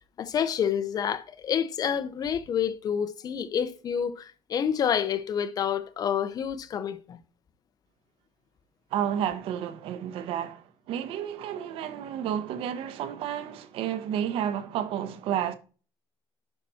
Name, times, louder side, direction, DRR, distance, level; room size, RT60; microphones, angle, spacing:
voice 1, 0.2-7.2, left 8 dB, 40° left, 0.8 m, -28 dB
voice 2, 8.9-15.5, right 9 dB, 65° right, 1.1 m, -31 dB
11.0 x 4.2 x 4.3 m
cardioid pair, 130°, 10 cm